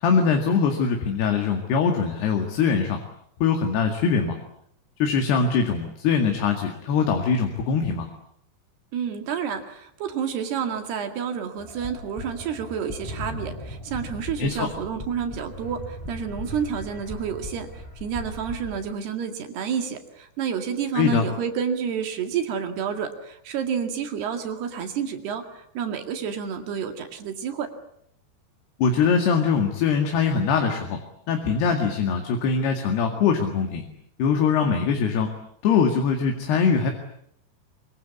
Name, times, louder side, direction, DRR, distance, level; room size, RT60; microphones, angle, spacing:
voice 1, 0.0-3.0 3.4-4.4 5.0-8.1 14.4-14.7 20.9-21.3 28.8-31.0 31.3-33.8 34.2-35.3 35.6-36.9, left 6 dB, 65° left, 4 dB, 4.1 m, -22 dB
voice 2, 8.9-27.7, right 7 dB, 65° right, 6 dB, 4.0 m, -29 dB
sound 1, 11.6-18.9, left 1 dB, 5° left, 5.3 m, -38 dB
25.0 x 24.0 x 8.5 m, 0.69 s
omnidirectional pair, 5.2 m